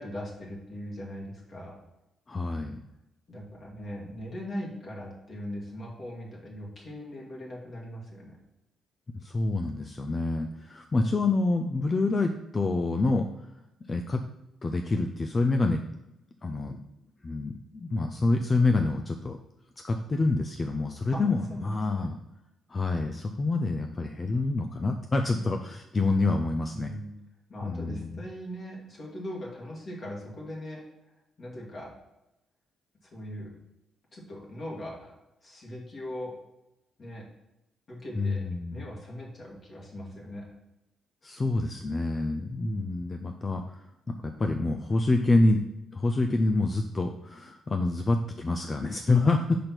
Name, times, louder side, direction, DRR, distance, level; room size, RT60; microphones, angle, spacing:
voice 1, 0.0-1.8 3.3-8.4 21.1-21.2 21.5-22.1 26.7-27.1 27.5-30.8 31.4-31.9 33.1-33.5 34.1-35.1 35.4-36.3 37.0-37.2 37.9-38.4 38.7-40.4 42.6-43.0, equal, 45° left, -3 dB, 2.0 m, -40 dB
voice 2, 2.3-2.8 9.2-13.5 13.9-14.2 14.6-15.8 16.4-16.8 17.2-19.4 19.8-22.2 22.7-26.9 27.6-28.2 38.2-38.8 41.2-43.8 44.2-45.6 45.9-49.6, left 2 dB, 30° left, 5 dB, 0.5 m, -27 dB
5.1 x 4.4 x 5.9 m, 0.92 s
cardioid pair, 90°, 0 cm